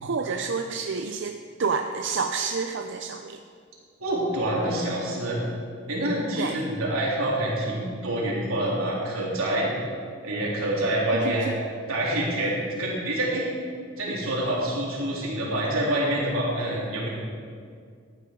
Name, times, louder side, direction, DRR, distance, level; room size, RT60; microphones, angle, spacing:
voice 1, 0.0-3.4 6.4-6.6 11.1-11.6, right 5 dB, 60° right, 5 dB, 0.5 m, -29 dB
voice 2, 4.0-5.4 5.9-9.7 10.2-11.5 11.9-13.5 14.0-17.1, right 1 dB, 85° right, -5 dB, 3.7 m, -26 dB
14.0 x 9.6 x 4.7 m, 2.2 s
head